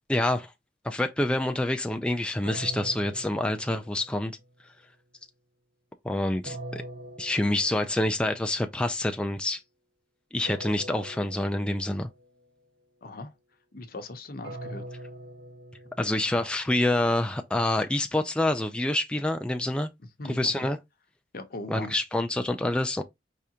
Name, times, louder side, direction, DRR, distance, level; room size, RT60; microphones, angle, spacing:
voice 1, 0.1-0.5 0.8-4.3 6.0-6.8 7.2-9.6 10.3-12.1 16.0-19.9 20.2-20.8 21.7-23.0, left 1 dB, 5° left, 0.4 m, -27 dB
sound 1, 2.4-4.5 6.4-8.3 10.4-12.3 14.4-16.6, right 1 dB, 90° right, 1.8 m, -43 dB
voice 2, 13.0-13.3 13.7-14.8 20.2-20.7 21.3-22.0, left 2 dB, 55° left, 0.8 m, -39 dB
4.9 x 3.4 x 2.8 m
head